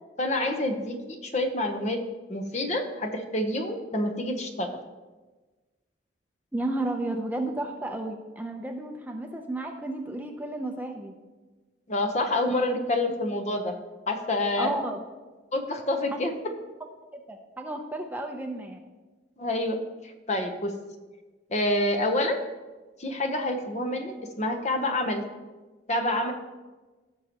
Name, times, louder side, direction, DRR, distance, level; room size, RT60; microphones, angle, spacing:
voice 1, 0.2-2.0 2.3-4.7 11.9-13.7 14.1-14.7 15.5-16.3 19.4-19.8 20.0-20.7 21.5-22.4 23.0-25.2 25.9-26.3, left 1 dB, 40° left, 5 dB, 0.9 m, -27 dB
voice 2, 6.5-11.2 14.6-15.0 17.1-18.9, right 2 dB, 10° right, 3 dB, 0.7 m, -32 dB
16.5 x 6.6 x 3.0 m, 1.2 s
head